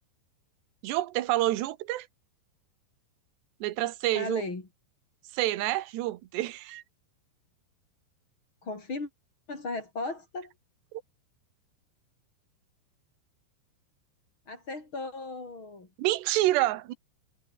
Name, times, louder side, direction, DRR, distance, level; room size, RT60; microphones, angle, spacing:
voice 1, 0.8-2.1 3.6-4.4 5.3-6.8 10.9-11.0 16.0-16.9, right 16 dB, 70° right, 3.3 m, -28 dB
voice 2, 4.1-4.6 8.6-9.1 9.5-10.5 14.5-15.9, left 3 dB, 25° left, 5.3 m, -36 dB
omnidirectional pair, 5.4 m